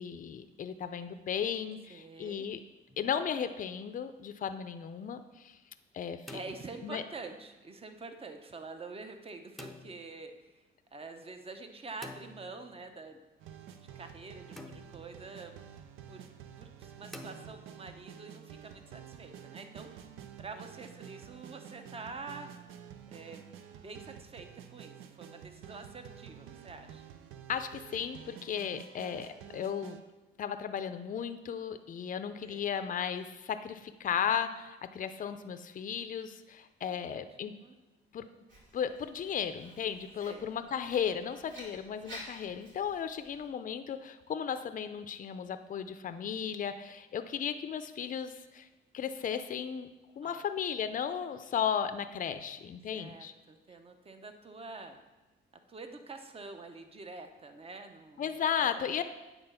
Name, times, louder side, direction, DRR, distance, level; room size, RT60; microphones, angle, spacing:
voice 1, 0.0-2.6 3.0-5.6 5.9-6.4 6.8-7.0 27.5-30.0 30.4-37.5 38.1-38.2 38.7-48.7 48.9-49.9 50.2-53.3 58.2-59.0, left 8 dB, 40° left, 10 dB, 0.5 m, -35 dB
voice 2, 1.9-2.5 6.3-10.6 10.9-13.2 13.8-15.5 16.1-16.2 16.6-22.5 23.1-23.5 23.8-27.0 32.4-32.7 36.9-37.7 40.2-40.5 50.2-50.4 52.9-55.0 55.7-58.9, right 3 dB, 30° right, 7 dB, 0.8 m, -47 dB
sound 1, 2.9-3.4 6.0-7.2 9.6-10.2 12.0-13.0 14.6-15.2 17.1-18.0, left 1 dB, ahead, 0.7 m, -49 dB
sound 2, 13.4-30.0, right 9 dB, 90° right, 0.6 m, -50 dB
Writing, 38.5-43.5, equal, 70° right, 2.8 m, -52 dB
8.7 x 4.0 x 5.6 m, 1.1 s
cardioid pair, 90°, 20 cm